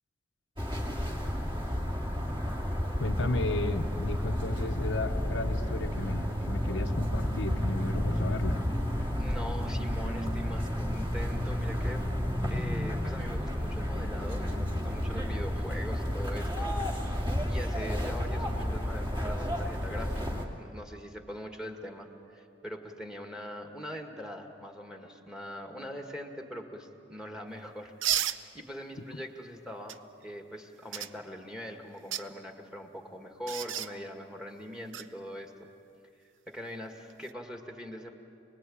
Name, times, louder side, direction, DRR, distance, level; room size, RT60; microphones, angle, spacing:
sound 1, 0.6-20.4, equal, 25° right, 2.8 m, -31 dB
voice 1, 3.0-8.6, left 2 dB, 65° left, 5 dB, 1.0 m, -34 dB
voice 2, 9.1-12.1 12.5-30.0 30.2-35.5 36.5-38.1, equal, 5° right, 3 dB, 2.0 m, -42 dB
sound 2, 28.0-28.4 29.9-30.0 30.9-31.1 31.9-32.2 33.5-33.9 34.9-35.0 37.1-37.3, right 10 dB, 75° right, 0.8 m, -31 dB
29.0 x 21.0 x 8.7 m, 2.6 s
head